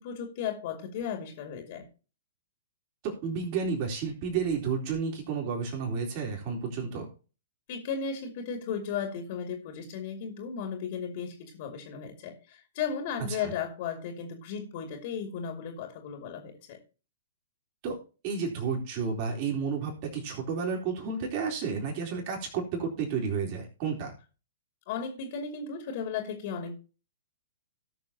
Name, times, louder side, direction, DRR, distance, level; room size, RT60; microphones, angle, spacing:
voice 1, 0.0-1.9 7.7-16.8 24.9-26.8, left 6 dB, 45° left, 4 dB, 2.3 m, -35 dB
voice 2, 3.0-7.1 13.4-13.5 17.8-18.0 18.2-24.1, right 5 dB, 40° right, 0 dB, 3.8 m, -31 dB
18.0 x 6.5 x 2.9 m, 0.34 s
figure-of-eight pair, 115°, 0 cm